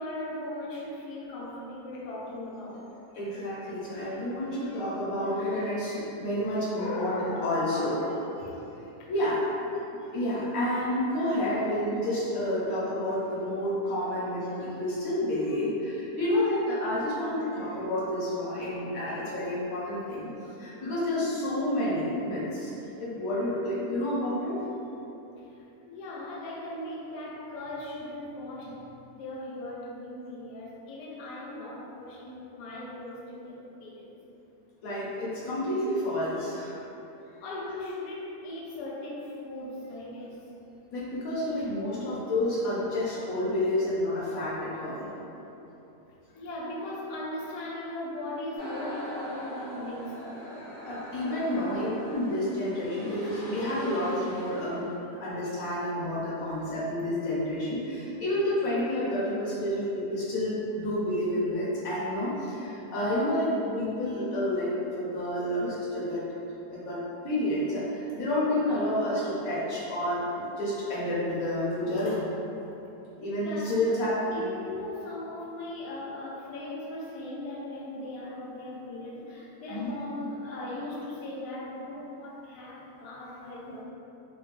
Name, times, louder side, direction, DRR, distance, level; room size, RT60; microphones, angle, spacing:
voice 1, 0.0-3.0 6.7-8.6 9.0-9.1 25.4-28.8 29.1-34.1 37.4-40.4 41.6-41.7 46.3-50.5 51.2-51.5 73.4-74.0 74.3-83.8, left 1 dB, 80° left, -4 dB, 1.2 m, -38 dB
voice 2, 3.1-8.0 9.1-9.4 10.1-20.3 20.6-22.7 23.0-24.5 34.8-36.8 40.9-45.1 50.8-54.8 55.2-66.2 66.7-67.0 67.2-72.3 73.2-74.4 79.7-79.9, left 1 dB, 65° left, -8 dB, 1.2 m, -29 dB
sound 1, 48.6-55.0, equal, 40° left, 0.9 m, -41 dB
3.3 x 2.1 x 3.1 m, 3.0 s
omnidirectional pair, 1.7 m